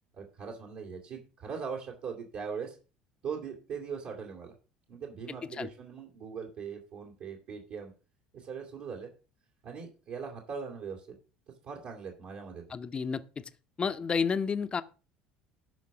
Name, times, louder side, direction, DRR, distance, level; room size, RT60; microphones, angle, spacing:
voice 1, 0.1-2.8 3.2-4.5 4.9-7.9 8.3-9.1 9.6-11.2 11.6-12.6, right 6 dB, 55° right, 2.7 m, -40 dB
voice 2, 12.7-13.4 13.8-14.8, left 5 dB, 30° left, 0.9 m, -30 dB
12.5 x 5.2 x 6.1 m
figure-of-eight pair, 65°, 3 cm